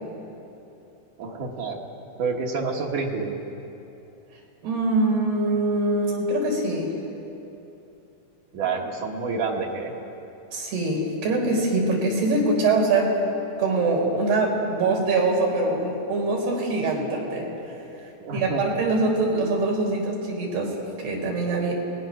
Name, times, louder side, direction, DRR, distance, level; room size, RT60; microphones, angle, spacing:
voice 1, 1.2-1.8 2.2-3.4 8.5-9.9 18.2-18.6 19.2-19.3, right 4 dB, 60° right, 0 dB, 2.9 m, -28 dB
voice 2, 4.6-6.9 10.5-13.1 13.6-17.5 18.3-20.7 21.0-21.7, right 2 dB, 85° right, -1 dB, 6.1 m, -23 dB
28.5 x 20.5 x 6.4 m, 2.9 s
omnidirectional pair, 4.5 m